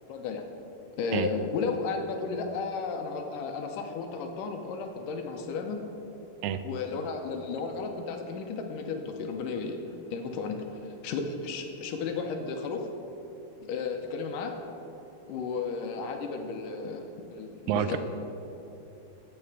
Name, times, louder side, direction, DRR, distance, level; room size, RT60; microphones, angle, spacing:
voice 1, 0.1-0.5 1.0-5.8 6.6-9.8 10.1-12.9 13.6-14.6 15.3-17.1 17.3-18.0, left 4 dB, 75° left, 4 dB, 2.3 m, -33 dB
voice 2, 1.1-1.3 6.4-6.6 17.7-18.0, right 10 dB, 85° right, 11 dB, 2.2 m, -28 dB
14.5 x 9.0 x 4.8 m, 2.9 s
omnidirectional pair, 4.1 m